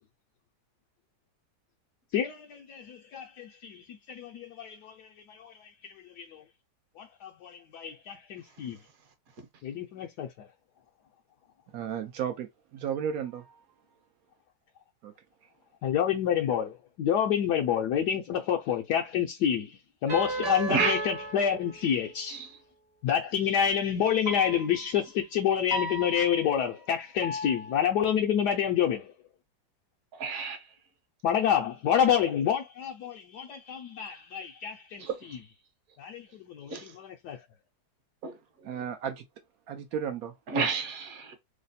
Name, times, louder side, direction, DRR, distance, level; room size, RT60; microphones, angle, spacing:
voice 1, 2.1-4.9 5.3-5.7 6.2-6.4 7.0-8.8 9.6-10.5 15.8-22.4 23.0-29.1 31.2-35.1 36.0-37.4, left 9 dB, 75° left, 1.0 m, -28 dB
voice 2, 11.7-13.6 15.0-15.1 38.6-39.2 39.7-40.3, right 8 dB, 75° right, 0.8 m, -34 dB
sound 1, 20.1-22.2 24.2-24.8 25.7-26.7 27.2-28.0, right 1 dB, 20° right, 0.6 m, -34 dB
voice 3, 20.5-21.0 22.3-22.6 30.1-30.7 35.0-35.4 36.7-37.0 38.2-38.4 38.7-38.8 40.5-41.4, right 5 dB, 55° right, 1.2 m, -31 dB
3.3 x 2.1 x 4.0 m
omnidirectional pair, 2.0 m